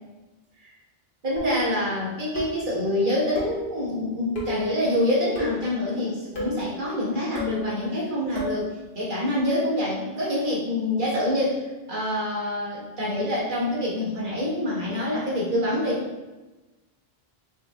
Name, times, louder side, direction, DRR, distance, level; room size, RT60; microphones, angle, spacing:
voice 1, 1.2-8.7 8.9-11.6 11.9-16.3, left 1 dB, 55° right, -6 dB, 1.2 m, -26 dB
sound 1, 1.4-1.8 2.3-2.7 3.3-3.7 4.3-4.7 5.4-5.7 6.3-6.6 7.3-7.6 8.3-8.6, left 1 dB, 70° left, 1.4 m, -32 dB
4.5 x 2.5 x 3.4 m, 1.1 s
omnidirectional pair, 1.1 m